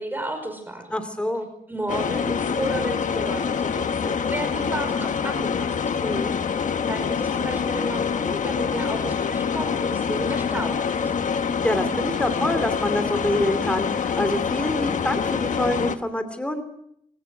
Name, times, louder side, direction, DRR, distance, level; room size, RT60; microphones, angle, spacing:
voice 1, 0.0-1.0 1.7-5.7 6.9-11.1, right 1 dB, 15° right, 6 dB, 5.1 m, -32 dB
voice 2, 0.9-1.5 6.0-6.4 11.3-16.6, left 1 dB, 10° left, 8 dB, 2.7 m, -26 dB
sound 1, 1.9-16.0, left 6 dB, 60° left, 1.1 m, -25 dB
22.0 x 19.0 x 6.2 m, 0.72 s
cardioid pair, 85°, 15 cm